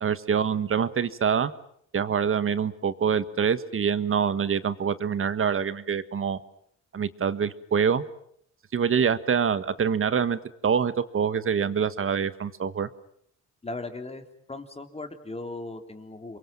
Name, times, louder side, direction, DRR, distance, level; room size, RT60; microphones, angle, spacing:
voice 1, 0.0-1.5 1.9-6.4 6.9-8.0 8.7-12.9, right 7 dB, 45° right, 14 dB, 1.6 m, -25 dB
voice 2, 13.6-16.4, left 2 dB, 20° left, 6 dB, 3.5 m, -38 dB
28.5 x 23.5 x 7.7 m, 0.68 s
cardioid pair, 90°, 30 cm